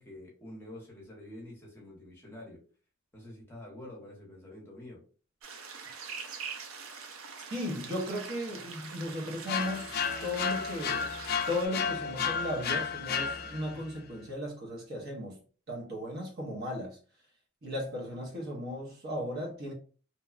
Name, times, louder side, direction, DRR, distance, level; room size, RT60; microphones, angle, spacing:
voice 1, 0.0-2.6 3.1-5.0, left 1 dB, 10° left, 0.8 m, -47 dB
sound 1, 5.4-11.7, right 5 dB, 85° right, 0.5 m, -44 dB
voice 2, 7.5-9.9 10.2-11.1 11.5-15.4 15.7-17.0 17.6-19.7, left 1 dB, 50° right, 0.7 m, -36 dB
sound 2, 9.5-13.8, left 6 dB, 50° left, 0.4 m, -32 dB
2.8 x 2.1 x 2.3 m
head